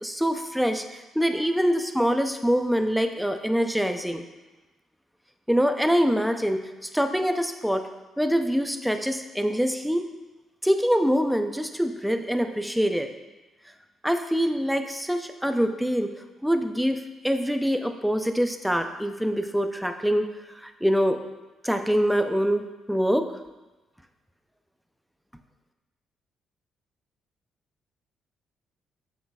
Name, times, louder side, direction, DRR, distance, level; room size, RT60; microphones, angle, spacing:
voice 1, 0.0-4.2 5.5-7.9 8.2-10.1 10.6-13.1 14.0-16.1 16.4-20.3 20.6-21.2 21.6-23.3, equal, ahead, 7 dB, 0.5 m, -24 dB
7.6 x 6.4 x 2.3 m, 1.1 s
cardioid pair, 90°, 0 cm